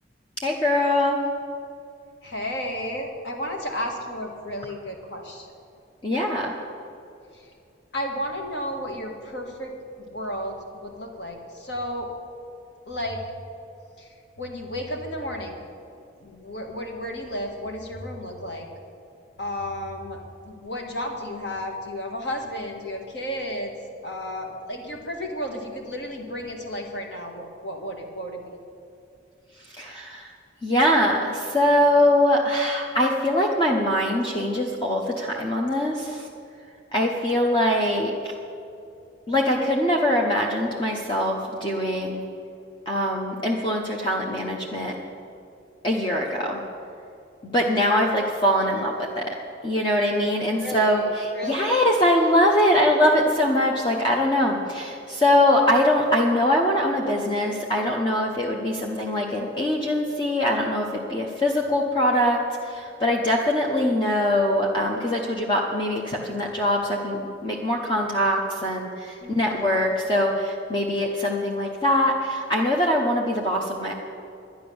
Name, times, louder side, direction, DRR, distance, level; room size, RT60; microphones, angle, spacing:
voice 1, 0.4-1.2 6.0-6.5 29.6-30.3 30.6-36.3 36.9-38.3 39.3-42.2 42.9-45.0 45.8-46.6 47.4-49.4 49.6-73.9, left 1 dB, 25° left, -1 dB, 0.9 m, -23 dB
voice 2, 2.2-5.5 7.3-7.5 7.9-12.1 12.9-13.2 14.0-15.6 16.2-18.7 19.4-20.2 20.5-23.7 24.0-28.6 50.6-51.1 51.3-51.8 69.2-69.8, equal, 60° left, 2 dB, 1.7 m, -33 dB
11.5 x 10.0 x 7.0 m, 2.6 s
head